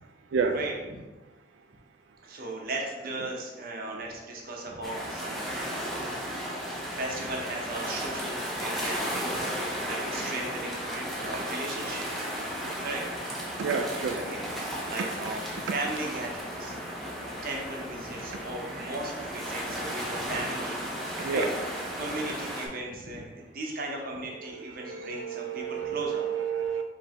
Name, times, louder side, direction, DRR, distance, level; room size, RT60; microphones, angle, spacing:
voice 1, 0.5-1.0 2.2-5.6 6.7-12.3 12.8-13.0 14.1-16.8 17.4-21.5 22.0-26.3, right 2 dB, 50° right, -1 dB, 0.7 m, -37 dB
sound 1, 4.8-22.7, equal, ahead, 0.7 m, -34 dB
voice 2, 13.6-14.2 21.2-21.5 24.7-26.8, right 6 dB, 85° right, 5 dB, 0.4 m, -30 dB
4.9 x 3.2 x 2.9 m, 1.2 s
head